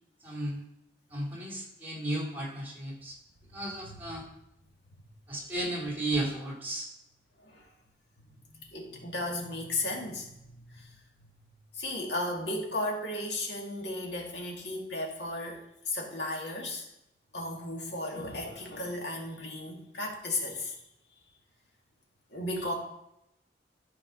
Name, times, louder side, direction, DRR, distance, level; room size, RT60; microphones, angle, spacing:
voice 1, 0.2-0.6 1.1-3.2 3.5-4.2 5.3-6.9, right 1 dB, 10° right, -2 dB, 2.4 m, -34 dB
voice 2, 3.6-4.0 5.5-5.6 7.4-7.7 8.7-11.3 11.7-16.9 17.3-20.7 22.3-22.7, left 1 dB, 75° left, 0 dB, 2.1 m, -35 dB
12.5 x 5.2 x 5.0 m, 0.82 s
head